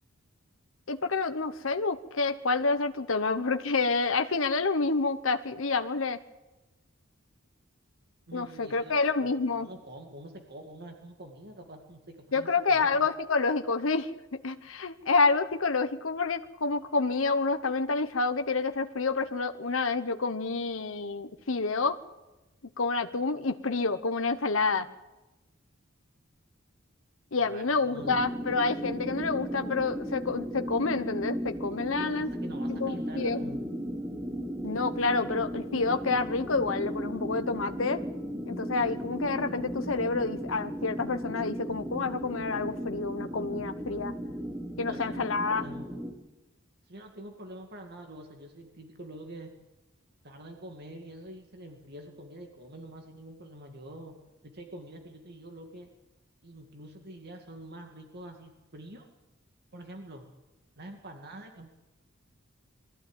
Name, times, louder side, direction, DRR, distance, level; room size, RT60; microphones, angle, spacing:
voice 1, 0.9-6.2 8.3-9.7 12.3-22.0 22.8-24.8 27.3-32.3 32.7-33.4 34.6-38.0 38.4-44.1 44.8-45.6, left 4 dB, 70° left, 8 dB, 1.1 m, -28 dB
voice 2, 8.3-13.1 27.4-28.3 32.0-33.6 44.8-46.0 46.8-49.5 50.2-54.1 54.4-55.9 56.4-59.1 59.7-60.2 60.8-61.7, right 1 dB, 50° right, 4 dB, 2.2 m, -46 dB
sound 1, 28.0-46.1, equal, 15° right, 3.0 m, -36 dB
21.5 x 15.0 x 9.0 m, 1.0 s
head